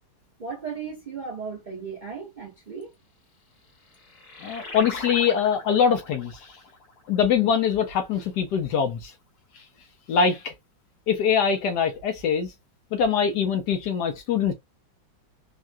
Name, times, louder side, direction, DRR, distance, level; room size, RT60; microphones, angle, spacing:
voice 1, 0.4-2.9, right 5 dB, 85° right, 0.4 m, -36 dB
sound 1, 3.4-8.5, left 3 dB, 50° left, 1.6 m, -42 dB
voice 2, 4.4-6.5 7.1-9.1 10.1-10.5 11.1-12.5 12.9-14.5, left 7 dB, 70° left, 1.0 m, -23 dB
3.6 x 2.2 x 2.4 m
omnidirectional pair, 2.2 m